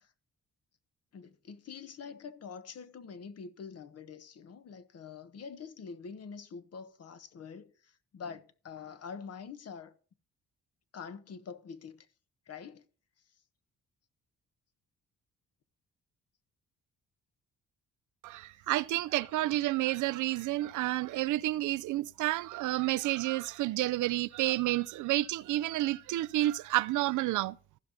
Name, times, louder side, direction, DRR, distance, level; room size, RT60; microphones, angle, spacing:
voice 1, 1.1-9.9 10.9-12.0 12.5-12.8, left 6 dB, 55° left, 1.2 m, -45 dB
voice 2, 18.2-27.6, right 16 dB, 80° right, 0.5 m, -30 dB
15.0 x 5.8 x 5.1 m
cardioid pair, 90°, 30 cm